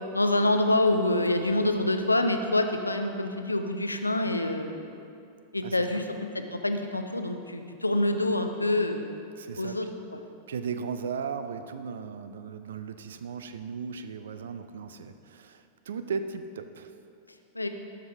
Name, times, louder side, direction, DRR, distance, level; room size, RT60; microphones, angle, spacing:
voice 1, 0.1-5.0 5.5-6.1 6.3-9.1 9.6-9.9 17.5-17.7, left 2 dB, 85° left, 7 dB, 0.5 m, -26 dB
voice 2, 5.6-6.0 9.4-9.8 10.5-16.9, right 6 dB, 65° right, 10 dB, 0.4 m, -36 dB
12.5 x 4.8 x 3.5 m, 2.5 s
figure-of-eight pair, 90°, 0 cm